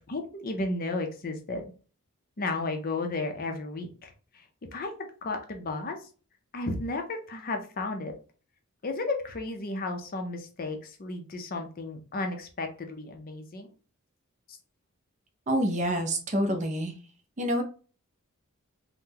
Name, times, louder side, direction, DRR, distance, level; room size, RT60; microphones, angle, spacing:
voice 1, 0.1-1.6 2.4-4.1 4.7-4.9 5.2-6.0 6.5-8.1 8.8-13.7 14.5-14.6, left 2 dB, 40° left, 5 dB, 0.5 m, -33 dB
voice 2, 15.5-16.9 17.4-17.6, equal, 30° right, 5 dB, 0.5 m, -27 dB
3.7 x 2.0 x 2.8 m, 0.38 s
head